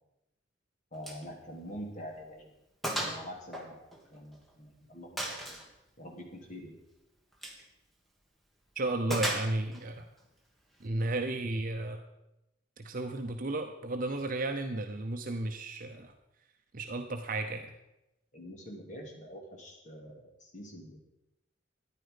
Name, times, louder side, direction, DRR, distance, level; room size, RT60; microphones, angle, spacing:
voice 1, 0.9-2.5 3.0-3.8 4.1-5.6 6.0-6.7 18.3-21.0, equal, 40° left, 1 dB, 2.9 m, -45 dB
Gunshot gunfire, 1.0-1.3 1.6-1.7 2.2-2.3 2.8-3.2 3.5-4.5 5.2-5.7 7.3-7.6 9.1-9.8, right 1 dB, ahead, 1.9 m, -35 dB
voice 2, 8.8-10.1 10.8-12.0 12.8-16.1 16.7-17.7, right 2 dB, 50° right, 5 dB, 0.8 m, -33 dB
13.5 x 10.5 x 5.2 m, 0.92 s
head